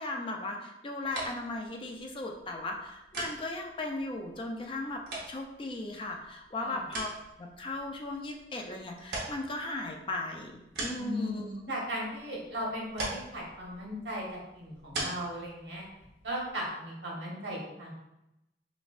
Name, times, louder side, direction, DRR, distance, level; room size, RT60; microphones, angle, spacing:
voice 1, 0.0-7.1 7.4-11.5, left 2 dB, 30° left, 2 dB, 0.4 m, -37 dB
sound 1, 1.0-16.7, right 2 dB, 60° right, 0.9 m, -43 dB
voice 2, 10.9-15.8 16.2-17.9, equal, 80° right, -4 dB, 1.1 m, -37 dB
4.1 x 2.3 x 2.4 m, 0.89 s
head